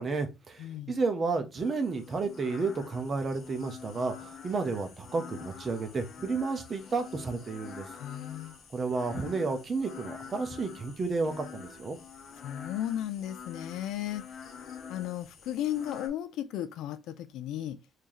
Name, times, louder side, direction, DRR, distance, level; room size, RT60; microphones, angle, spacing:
voice 1, 0.0-7.9 8.7-12.0, right 4 dB, 25° right, 0.6 m, -32 dB
voice 2, 0.6-0.9 8.0-8.5 12.4-14.2 14.9-17.8, left 11 dB, 75° left, 0.4 m, -35 dB
sound 1, 1.6-16.1, left 7 dB, 40° left, 0.7 m, -46 dB
3.1 x 2.7 x 3.8 m
cardioid pair, 175°, 0 cm